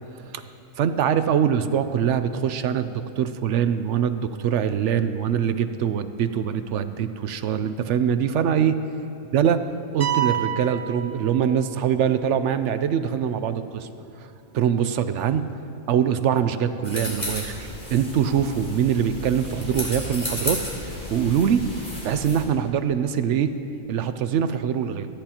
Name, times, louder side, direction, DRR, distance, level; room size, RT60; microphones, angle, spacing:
voice 1, 0.8-8.7 9.3-9.6 9.9-13.9 14.5-15.5 15.9-20.6 21.1-21.6 22.0-23.5 23.9-25.1, right 8 dB, 70° right, 11 dB, 0.8 m, -23 dB
sound 1, 10.0-11.9, right 10 dB, 35° right, 0.7 m, -28 dB
sound 2, 16.8-22.4, left 1 dB, 40° left, 3.5 m, -33 dB
27.5 x 10.5 x 2.9 m, 2.9 s
omnidirectional pair, 1.3 m